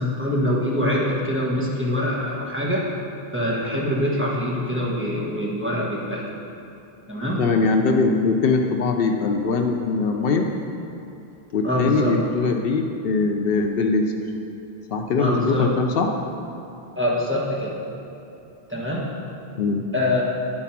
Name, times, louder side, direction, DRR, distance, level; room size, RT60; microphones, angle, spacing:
voice 1, 0.0-2.8 3.3-6.2 7.1-7.4 11.6-12.2 15.2-15.7 17.0-17.8 18.7-19.1 19.9-20.2, left 1 dB, 10° right, -6 dB, 1.2 m, -24 dB
voice 2, 7.4-10.5 11.5-14.1 14.9-16.1 19.6-19.9, left 4 dB, 70° left, 3 dB, 0.7 m, -21 dB
9.9 x 4.1 x 5.8 m, 2.8 s
omnidirectional pair, 1.0 m